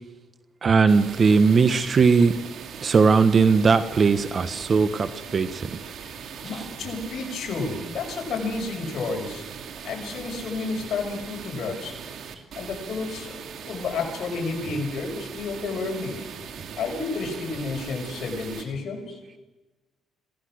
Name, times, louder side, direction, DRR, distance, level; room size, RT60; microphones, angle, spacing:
voice 1, 0.6-2.3 2.8-5.8 6.5-6.7, right 5 dB, 45° right, 11 dB, 1.3 m, -19 dB
sound 1, 0.9-18.6, right 7 dB, 70° right, 2.8 m, -40 dB
voice 2, 6.4-9.5 9.8-12.0 12.5-16.2 16.8-19.2, left 4 dB, 60° left, 0 dB, 6.3 m, -31 dB
26.5 x 17.5 x 6.4 m, 1.1 s
cardioid pair, 90°, 0 cm